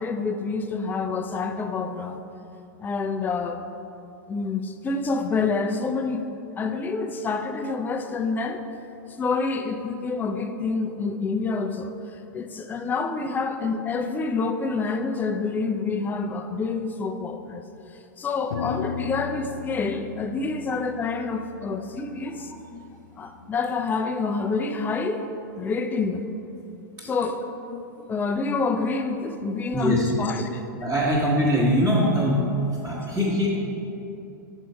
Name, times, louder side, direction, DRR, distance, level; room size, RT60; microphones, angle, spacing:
voice 1, 0.0-2.2 2.8-3.6 4.3-6.2 6.6-8.6 9.2-17.6 18.2-22.5 23.2-25.2 25.6-26.3 27.0-27.4 28.1-30.6, left 4 dB, 15° left, 7 dB, 0.4 m, -27 dB
sound 1, 18.5-23.0, left 5 dB, 75° left, 0.4 m, -36 dB
voice 2, 29.7-30.1 30.8-32.5 32.8-33.5, equal, 10° right, -8 dB, 1.3 m, -22 dB
6.2 x 4.5 x 5.4 m, 2.7 s
hypercardioid pair, 125°, 11 cm